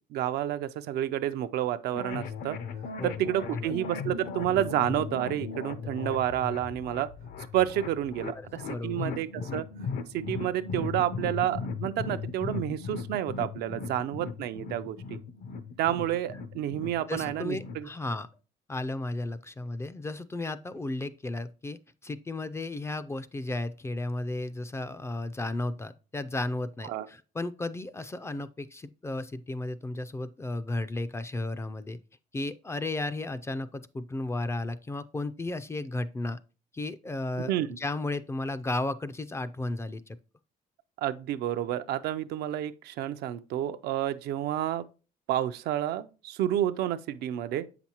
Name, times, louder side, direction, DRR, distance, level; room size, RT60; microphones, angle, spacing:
voice 1, 0.1-2.6 3.0-7.1 7.5-9.7 10.1-15.2 15.8-17.9 26.9-27.1 37.4-37.8 41.0-44.9 45.3-47.7, right 12 dB, 75° right, 0.5 m, -30 dB
sound 1, 1.9-17.9, left 5 dB, 60° left, 0.6 m, -37 dB
voice 2, 8.7-9.5 17.1-18.3 18.7-32.0 32.3-36.4 36.7-40.2, left 2 dB, 15° left, 0.3 m, -34 dB
7.6 x 5.9 x 2.9 m
cardioid pair, 110°, 17 cm